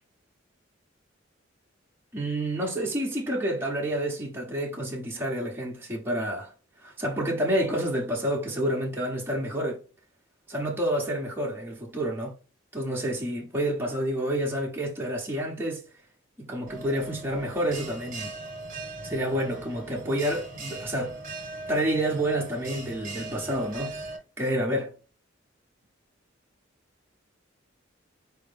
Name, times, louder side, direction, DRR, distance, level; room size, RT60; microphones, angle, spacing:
voice 1, 2.1-6.5 6.8-9.8 10.5-12.3 12.7-15.8 16.4-18.3 19.0-21.2 21.7-24.0 24.4-24.9, right 1 dB, 10° right, 1.0 m, -29 dB
Bell, 16.7-24.2, right 2 dB, 40° right, 1.4 m, -40 dB
4.4 x 3.1 x 3.4 m
head